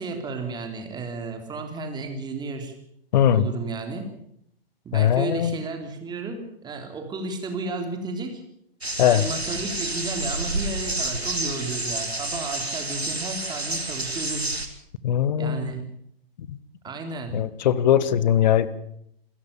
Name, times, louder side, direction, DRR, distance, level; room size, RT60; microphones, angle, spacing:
voice 1, 0.0-2.7 3.3-4.1 4.8-8.4 9.0-14.5 15.4-15.8 16.8-17.4, right 3 dB, 15° right, 5 dB, 3.4 m, -33 dB
voice 2, 3.1-3.4 4.9-5.6 9.0-9.3 15.0-15.7 16.4-16.5 17.3-18.7, left 10 dB, 45° left, 18 dB, 1.4 m, -20 dB
sound 1, 8.8-14.7, right 2 dB, 90° right, 2.9 m, -29 dB
28.0 x 13.5 x 7.1 m, 0.71 s
figure-of-eight pair, 120°, 30 cm